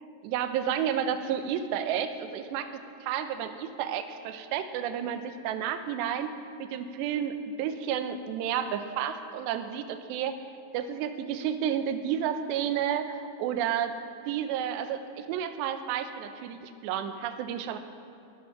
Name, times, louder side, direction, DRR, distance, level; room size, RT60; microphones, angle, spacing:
voice 1, 0.0-2.7 3.0-6.3 6.6-10.4 10.7-13.9 14.3-17.8, right 9 dB, 85° right, 9 dB, 3.0 m, -31 dB
20.5 x 10.5 x 5.9 m, 2.6 s
omnidirectional pair, 4.8 m